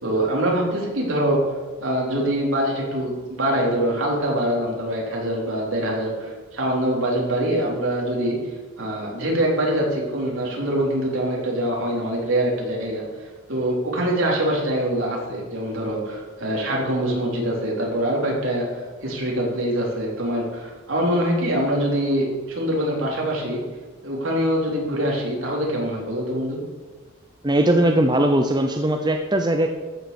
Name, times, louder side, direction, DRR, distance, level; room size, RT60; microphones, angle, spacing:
voice 1, 0.0-1.4 1.8-8.4 8.8-13.0 13.5-23.6 24.0-26.6, right 1 dB, 65° right, -2 dB, 3.7 m, -24 dB
voice 2, 27.4-29.7, right 1 dB, 20° right, 4 dB, 0.7 m, -19 dB
14.0 x 6.8 x 7.0 m, 1.3 s
head